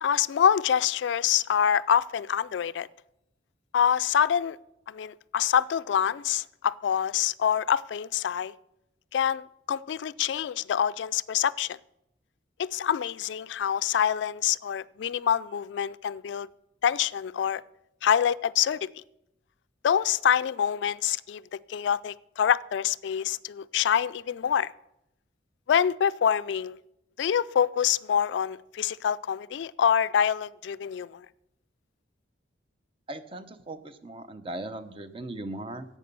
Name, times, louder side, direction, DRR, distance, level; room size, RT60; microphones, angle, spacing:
voice 1, 0.0-2.9 3.7-4.6 4.9-8.5 9.1-11.8 12.6-16.5 16.8-17.6 18.0-19.0 19.8-24.7 25.7-26.8 27.2-31.3, left 8 dB, 70° left, 0.3 m, -26 dB
voice 2, 33.1-35.9, right 1 dB, 30° right, 0.7 m, -38 dB
11.0 x 8.4 x 6.8 m
head